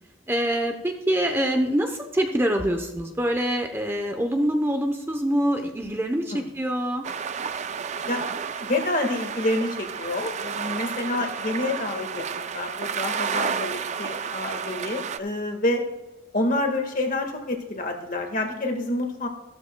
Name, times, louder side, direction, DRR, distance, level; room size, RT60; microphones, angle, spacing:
voice 1, 0.3-7.0, equal, 10° right, 4 dB, 0.7 m, -25 dB
sound 1, 7.0-15.2, right 6 dB, 35° right, 0.4 m, -31 dB
voice 2, 8.6-15.8 16.3-19.3, left 2 dB, 45° left, 3 dB, 1.6 m, -28 dB
14.5 x 13.0 x 2.2 m, 1.0 s
head